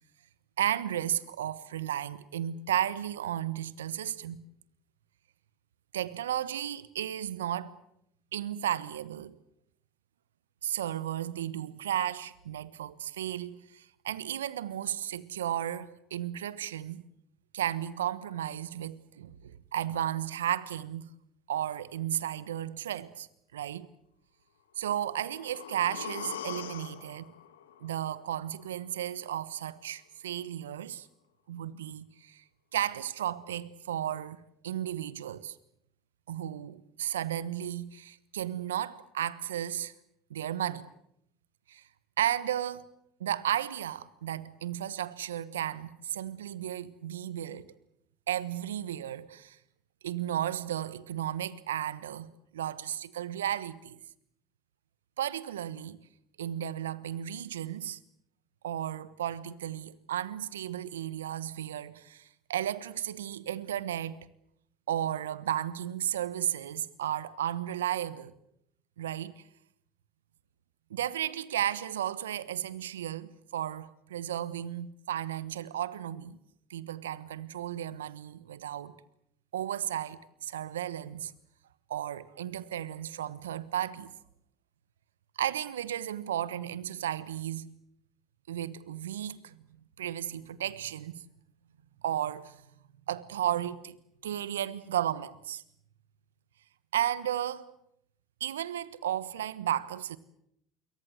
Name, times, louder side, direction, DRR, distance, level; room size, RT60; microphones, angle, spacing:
voice 1, 0.6-4.4 5.9-7.8 8.3-9.4 10.6-17.0 17.5-21.1 21.5-23.3 23.5-23.9 24.8-27.3 27.8-31.1 31.5-32.4 32.7-35.6 36.3-39.9 40.3-40.9 41.7-41.8 42.2-42.9 43.2-47.7 48.3-49.6 50.0-54.0 55.2-56.0 56.4-58.0 58.6-64.3 64.9-68.3 69.0-69.4 70.9-76.4 76.7-78.9 79.5-81.3 81.9-84.1 85.4-87.7 88.5-89.6 90.0-91.2 92.0-92.6 93.1-94.0 94.2-95.6 96.9-97.7 98.4-100.2, right 11 dB, 85° right, 1.2 m, -34 dB
sound 1, 24.9-28.9 29.2-29.3, left 9 dB, 85° left, 2.2 m, -43 dB
26.0 x 23.0 x 8.0 m
hypercardioid pair, 65°, 0 cm